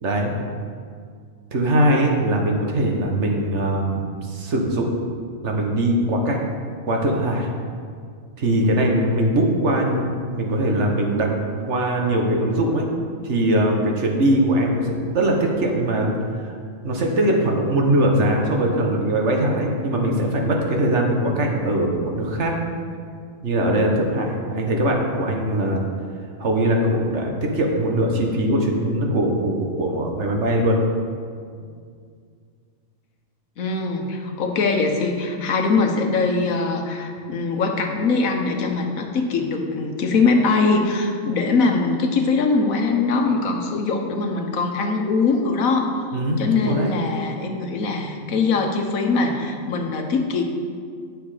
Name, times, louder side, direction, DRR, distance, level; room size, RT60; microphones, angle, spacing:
voice 1, 0.0-0.3 1.5-4.9 5.4-6.4 6.9-7.5 8.4-11.3 11.6-12.9 13.2-16.1 16.4-16.6 16.8-22.6 23.4-25.8 26.4-30.8 46.1-46.9, right 1 dB, 60° right, 1 dB, 1.4 m, -21 dB
voice 2, 33.6-45.9 46.4-50.4, left 4 dB, 90° left, 3 dB, 1.4 m, -22 dB
9.6 x 6.6 x 4.9 m, 2.1 s
omnidirectional pair, 1.4 m